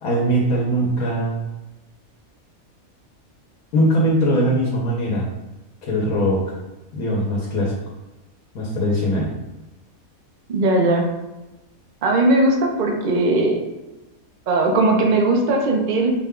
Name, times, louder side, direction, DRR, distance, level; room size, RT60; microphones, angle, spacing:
voice 1, 0.0-1.4 3.7-5.3 5.8-6.4 6.9-7.7 8.5-9.3, equal, 85° left, -3 dB, 1.2 m, -20 dB
voice 2, 10.5-11.1 12.0-13.6 14.5-16.1, right 2 dB, 50° right, 2 dB, 0.6 m, -18 dB
4.4 x 2.2 x 3.6 m, 1.0 s
omnidirectional pair, 1.5 m